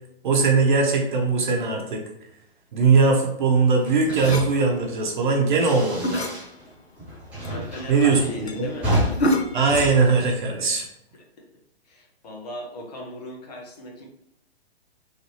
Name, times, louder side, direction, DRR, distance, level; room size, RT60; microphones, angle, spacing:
voice 1, 0.2-2.0 2.7-6.2 7.9-8.7 9.5-10.8, right 4 dB, 50° right, 1 dB, 0.8 m, -20 dB
sound 1, 3.8-6.7 7.0-10.8, equal, 5° right, 0.4 m, -31 dB
sound 2, 4.1-4.5 5.8-6.4 6.9-7.0 7.4-7.5 7.9-8.0 8.5-8.6 9.0-9.7, left 1 dB, 85° left, 0.6 m, -26 dB
voice 2, 7.4-8.9 11.1-11.5 11.8-14.1, left 1 dB, 40° left, -1 dB, 0.8 m, -38 dB
3.2 x 2.6 x 2.8 m, 0.79 s
figure-of-eight pair, 120°, 32 cm